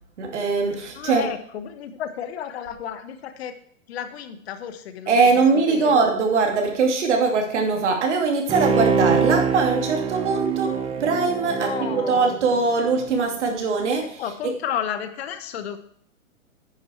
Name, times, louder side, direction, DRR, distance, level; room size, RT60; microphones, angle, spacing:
voice 1, 0.2-1.3 5.1-10.7 11.0-14.5, right 4 dB, 60° right, 2 dB, 2.7 m, -21 dB
voice 2, 0.8-3.6 3.9-5.4 5.7-6.0 11.6-12.4 14.2-15.8, left 9 dB, 55° left, 9 dB, 1.2 m, -32 dB
Bowed string instrument, 8.5-13.1 13.5-13.6, right 6 dB, 15° right, 0.7 m, -25 dB
9.9 x 7.8 x 4.6 m, 0.63 s
hypercardioid pair, 115°, 39 cm